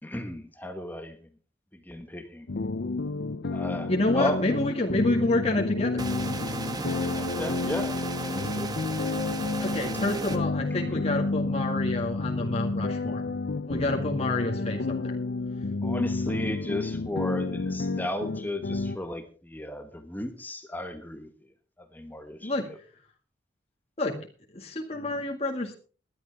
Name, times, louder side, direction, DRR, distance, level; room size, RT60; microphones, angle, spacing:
voice 1, 0.0-1.3 1.7-2.5 3.5-4.5 7.2-8.7 10.7-11.0 15.8-21.3 21.8-22.8, left 1 dB, 10° left, 7 dB, 1.3 m, -35 dB
sound 1, 2.5-19.0, left 3 dB, 60° left, 0.6 m, -30 dB
voice 2, 3.9-6.0 9.6-13.2 13.7-15.2 22.4-22.7 24.0-24.2 24.5-25.7, left 2 dB, 35° left, 1 dB, 1.9 m, -28 dB
sound 2, 6.0-10.4, right 3 dB, 20° right, 1.3 m, -35 dB
19.0 x 11.5 x 3.4 m, 0.37 s
head